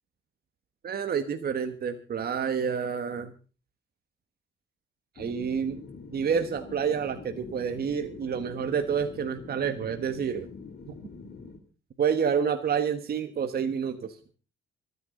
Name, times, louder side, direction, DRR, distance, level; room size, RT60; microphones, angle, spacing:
voice 1, 0.8-3.3 5.1-5.8 6.1-10.5 10.9-11.0 12.0-14.2, right 7 dB, 50° right, 7 dB, 1.4 m, -28 dB
sound 1, 5.2-11.6, left 4 dB, 50° left, 2.9 m, -45 dB
26.5 x 9.9 x 3.9 m, 0.36 s
cardioid pair, 90°, 20 cm